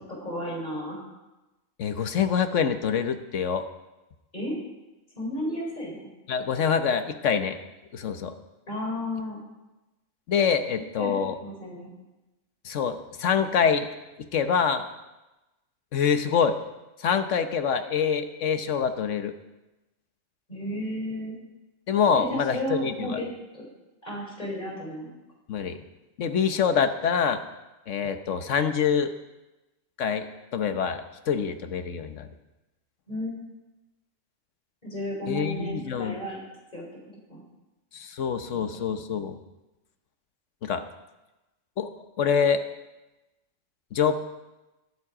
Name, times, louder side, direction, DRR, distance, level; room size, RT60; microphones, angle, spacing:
voice 1, 0.2-1.0 4.3-4.6 5.2-6.1 8.7-9.4 11.0-11.9 20.5-21.4 22.1-23.3 23.5-23.7 24.0-25.1 33.1-33.4 34.8-36.4 36.7-36.9 37.3-37.4, equal, 30° left, -3 dB, 4.4 m, -33 dB
voice 2, 1.8-3.6 6.3-7.6 7.9-8.3 10.3-11.4 12.6-13.9 14.3-14.9 15.9-16.6 17.0-19.3 21.9-23.2 25.5-25.8 26.2-27.4 27.9-29.1 30.0-30.3 30.5-32.3 35.3-36.2 37.9-39.4 40.6-40.8 41.8-41.9 42.2-42.6 43.9-44.1, left 7 dB, 70° left, 9 dB, 1.3 m, -25 dB
22.0 x 7.6 x 4.9 m, 1.0 s
omnidirectional pair, 1.4 m